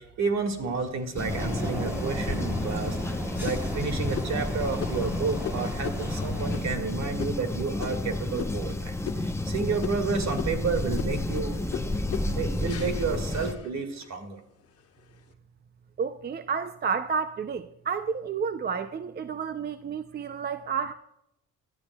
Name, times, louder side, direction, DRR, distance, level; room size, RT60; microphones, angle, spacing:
voice 1, 0.0-3.0 3.4-11.6 12.3-14.4, right 4 dB, 65° right, 2.0 m, -31 dB
sound 1, 0.6-1.5 2.1-2.2 2.7-3.0 3.5-8.8 9.0-9.5 9.8-14.1 14.6-15.1, left 7 dB, 55° left, 1.4 m, -39 dB
sound 2, 1.1-13.5, left 2 dB, 10° left, 0.7 m, -31 dB
sound 3, 1.3-6.7, equal, 5° right, 3.7 m, -35 dB
voice 2, 16.0-20.9, right 6 dB, 35° right, 0.5 m, -31 dB
19.5 x 12.0 x 2.3 m
cardioid pair, 90°, 30 cm